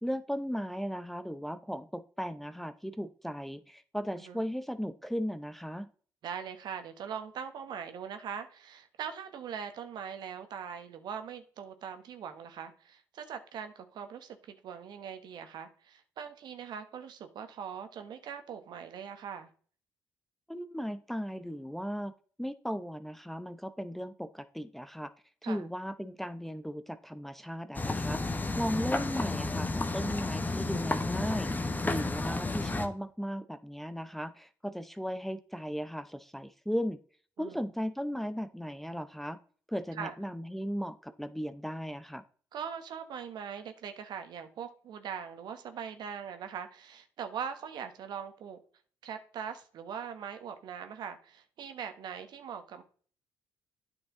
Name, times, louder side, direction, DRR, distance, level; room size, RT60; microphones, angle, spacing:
voice 1, 0.0-5.9 20.5-22.1 22.4-25.1 25.4-37.0 37.4-39.4 39.7-42.2, equal, 5° left, 0.7 m, -36 dB
voice 2, 6.2-19.5 25.4-25.7 28.5-28.8 37.4-37.6 40.0-40.1 42.5-48.6 49.0-52.8, right 7 dB, 65° right, 1.3 m, -41 dB
sound 1, 27.7-32.9, left 2 dB, 20° left, 1.2 m, -32 dB
9.2 x 5.9 x 3.8 m
supercardioid pair, 65°, 8 cm